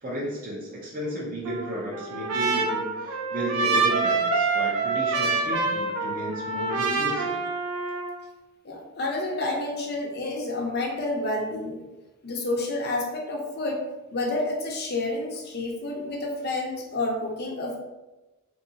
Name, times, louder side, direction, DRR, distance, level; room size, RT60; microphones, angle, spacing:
voice 1, 0.0-7.3, right 1 dB, 40° right, -5 dB, 0.7 m, -33 dB
Trumpet, 1.4-8.2, right 4 dB, 85° right, 0.5 m, -26 dB
voice 2, 8.6-11.8 12.2-13.8 14.1-17.8, left 2 dB, 45° left, 0 dB, 0.6 m, -29 dB
3.5 x 2.7 x 2.8 m, 1.1 s
head